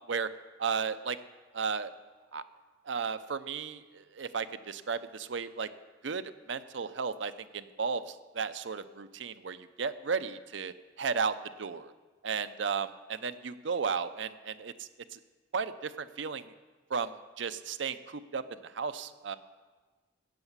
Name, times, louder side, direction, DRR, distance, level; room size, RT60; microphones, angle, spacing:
voice 1, 0.6-1.2 1.5-1.9 2.3-2.4 2.9-5.7 6.0-11.9 12.2-15.2 15.5-16.5 16.9-19.4, right 5 dB, 70° right, 11 dB, 0.6 m, -34 dB
13.0 x 8.2 x 8.0 m, 1.3 s
head